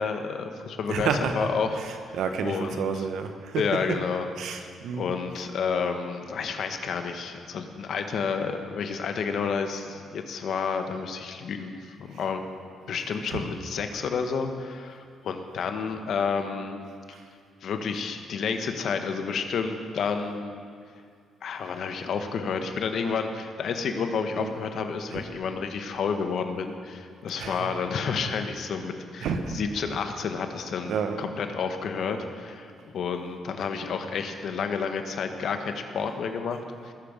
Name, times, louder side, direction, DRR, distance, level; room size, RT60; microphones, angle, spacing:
voice 1, 0.0-1.8 2.4-3.1 3.5-12.4 12.9-16.8 17.6-20.6 21.4-36.9, left 5 dB, 65° left, 6 dB, 1.2 m, -30 dB
voice 2, 0.9-4.0 4.4-5.1 5.3-5.4 12.2-12.3 13.3-13.4 17.1-17.2 24.4-24.5 25.1-25.2 27.4-27.7 29.2-29.6 30.9-31.2, right 5 dB, 75° right, 7 dB, 1.1 m, -30 dB
20.0 x 7.1 x 5.1 m, 2.2 s
cardioid pair, 90°, 0 cm